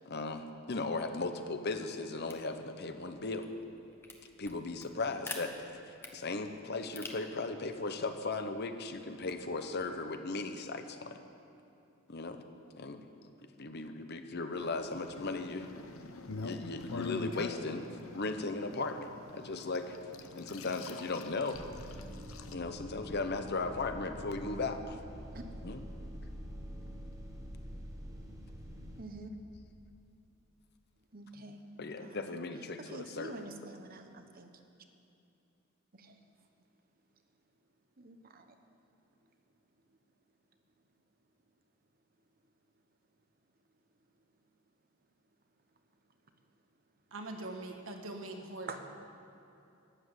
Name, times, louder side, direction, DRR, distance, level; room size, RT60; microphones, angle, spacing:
voice 1, 0.1-3.5 4.4-5.5 5.9-11.2 12.1-12.4 12.7-13.0 13.6-15.7 16.4-17.9 18.1-19.1 19.3-20.0 20.4-21.6 22.5-25.0 25.6-25.8 31.8-33.4, left 3 dB, 50° left, 7 dB, 0.9 m, -37 dB
sound 1, 2.2-10.1, left 2 dB, 10° left, 1.0 m, -51 dB
sound 2, 14.6-22.5, left 3 dB, 90° left, 0.9 m, -44 dB
sound 3, 21.5-29.0, equal, 15° right, 1.3 m, -45 dB
voice 2, 29.0-29.3 31.1-31.7 32.0-32.4 32.8-34.5 35.9-36.2 38.0-38.5 48.7-48.8, right 3 dB, 45° right, 6 dB, 1.0 m, -47 dB
voice 3, 47.1-48.8, right 2 dB, 75° right, 3 dB, 1.5 m, -42 dB
12.5 x 10.5 x 8.2 m, 2.8 s
head